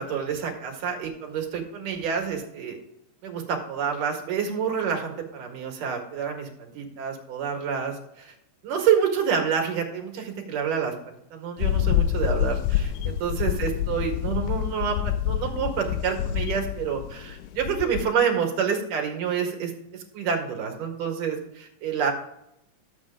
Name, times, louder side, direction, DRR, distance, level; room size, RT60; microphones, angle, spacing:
voice 1, 0.0-2.8 3.2-8.3 8.6-22.1, right 7 dB, 70° right, 2 dB, 3.3 m, -28 dB
sound 1, 11.6-18.1, left 11 dB, 90° left, 1.7 m, -27 dB
12.0 x 7.9 x 3.6 m, 0.80 s
omnidirectional pair, 3.9 m